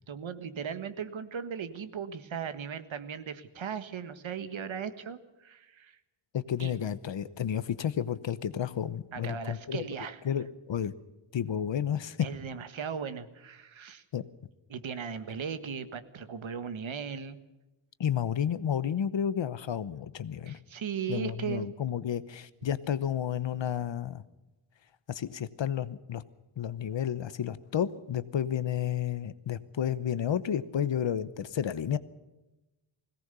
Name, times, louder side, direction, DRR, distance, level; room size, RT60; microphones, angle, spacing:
voice 1, 0.1-6.0 6.6-6.7 9.1-10.2 12.2-14.0 14.7-17.4 20.5-21.7, right 7 dB, 65° right, 10 dB, 1.6 m, -37 dB
voice 2, 6.3-9.8 10.2-10.9 11.3-12.2 14.1-14.2 18.0-20.6 21.1-24.2 25.1-26.2 26.6-32.0, left 9 dB, 60° left, 15 dB, 1.0 m, -31 dB
21.0 x 18.0 x 6.9 m, 1.0 s
wide cardioid pair, 175°, 49 cm